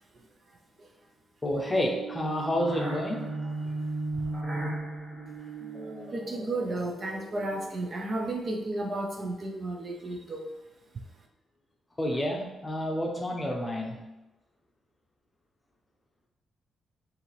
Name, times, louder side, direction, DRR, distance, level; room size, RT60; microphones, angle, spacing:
voice 1, 1.4-3.3 12.0-14.0, left 1 dB, 15° left, 1 dB, 0.7 m, -29 dB
sound 1, 1.5-7.9, right 2 dB, 25° right, 0.9 m, -36 dB
voice 2, 6.1-10.5, right 2 dB, 40° right, 2 dB, 0.5 m, -33 dB
5.1 x 2.6 x 3.3 m, 0.96 s
cardioid pair, 110°, 0 cm